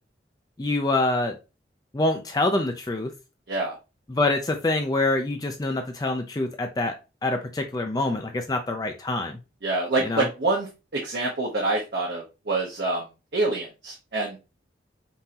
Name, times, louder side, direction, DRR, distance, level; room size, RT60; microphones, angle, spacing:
voice 1, 0.6-1.3 1.9-3.1 4.1-6.9 7.2-9.4 10.0-10.3, left 2 dB, 20° left, 4 dB, 0.4 m, -25 dB
voice 2, 9.6-13.0 13.3-14.4, right 2 dB, 65° right, -1 dB, 0.8 m, -26 dB
5.3 x 2.7 x 2.8 m, 0.28 s
head